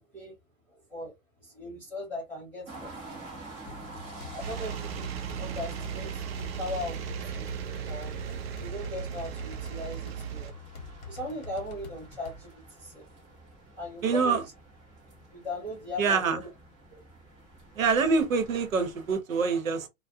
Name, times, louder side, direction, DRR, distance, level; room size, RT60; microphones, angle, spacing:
voice 1, 1.4-3.2 4.3-5.1 5.4-6.1 6.3-7.5 7.9-8.1 8.6-10.5 11.1-12.5 12.8-13.0 13.8-14.4 15.3-16.5 16.9-17.0, left 2 dB, 5° left, 0.4 m, -38 dB
sound 1, 2.7-19.2, right 2 dB, 15° right, 0.8 m, -48 dB
sound 2, 3.7-12.4, left 3 dB, 35° left, 1.0 m, -46 dB
sound 3, 4.4-10.5, right 8 dB, 50° right, 0.6 m, -36 dB
voice 2, 14.0-14.4 16.0-16.4 17.7-19.9, right 5 dB, 75° right, 0.9 m, -25 dB
2.3 x 2.1 x 2.7 m
hypercardioid pair, 140°, 41 cm